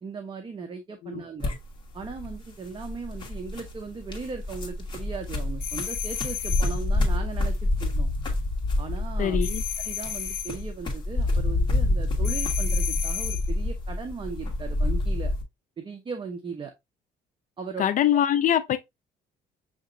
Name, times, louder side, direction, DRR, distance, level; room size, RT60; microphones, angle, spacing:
voice 1, 0.0-1.5 1.9-8.1 8.8-9.4 9.8-15.3 15.8-16.7 17.6-17.8 18.1-18.2, right 5 dB, 30° right, 0.7 m, -38 dB
sound 1, 1.4-15.4, left 2 dB, 25° left, 1.6 m, -28 dB
sound 2, 5.6-6.8 9.4-10.6 12.2-13.5, left 10 dB, 70° left, 1.3 m, -33 dB
voice 2, 9.2-9.6 17.8-18.8, left 10 dB, 50° left, 0.4 m, -23 dB
6.4 x 2.9 x 2.5 m
cardioid pair, 110°, 17 cm